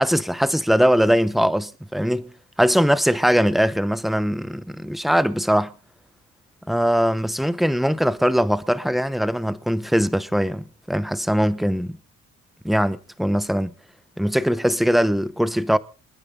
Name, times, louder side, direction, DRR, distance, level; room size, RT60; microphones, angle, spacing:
voice 1, 0.0-2.3 2.6-5.7 6.7-12.0 12.6-13.7 14.2-15.8, equal, ahead, 0.9 m, -21 dB
27.5 x 9.7 x 3.8 m
cardioid pair, 90°, 30 cm